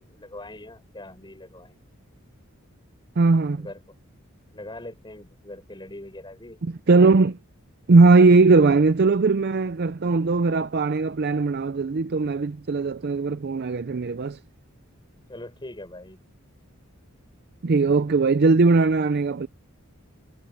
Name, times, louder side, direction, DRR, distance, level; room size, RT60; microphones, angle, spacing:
voice 1, 0.0-1.8 3.6-4.0 4.5-6.6 15.3-16.2, left 1 dB, 20° left, 6.5 m, -42 dB
voice 2, 3.2-3.7 6.6-7.4 7.9-14.4 17.6-19.5, right 3 dB, 50° right, 0.5 m, -19 dB
head